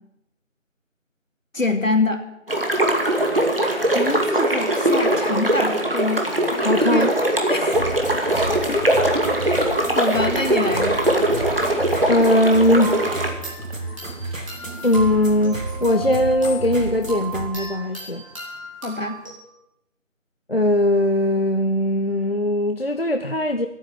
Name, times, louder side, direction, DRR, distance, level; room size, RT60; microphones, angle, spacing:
voice 1, 1.5-2.3 3.9-6.3 6.9-7.1 7.5-7.8 8.5-8.9 9.5-9.6 9.9-11.0 18.8-19.2, left 2 dB, 75° left, 5 dB, 2.5 m, -25 dB
sound 1, 2.5-13.3, right 1 dB, 45° right, 2.3 m, -21 dB
voice 2, 6.6-7.1 12.1-13.1 13.7-14.0 14.8-18.2 20.5-23.7, left 1 dB, 45° left, 7 dB, 0.7 m, -20 dB
sound 2, 7.7-17.5, right 2 dB, 75° right, 3.7 m, -32 dB
sound 3, 12.8-19.3, right 2 dB, 25° right, 3.4 m, -36 dB
15.0 x 9.4 x 8.4 m, 0.84 s
figure-of-eight pair, 175°, 40 cm